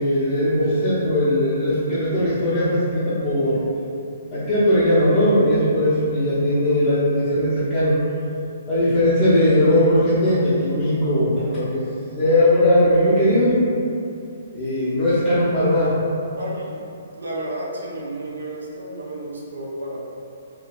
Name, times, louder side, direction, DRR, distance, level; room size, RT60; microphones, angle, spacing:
voice 1, 0.0-3.6 4.3-8.0 8.7-11.8 12.1-13.7 14.5-15.9, left 1 dB, 40° left, -12 dB, 0.9 m, -19 dB
voice 2, 16.4-16.8 17.1-20.0, right 1 dB, 70° right, -3 dB, 0.6 m, -31 dB
3.7 x 2.8 x 2.4 m, 2.6 s
figure-of-eight pair, 125°, 0 cm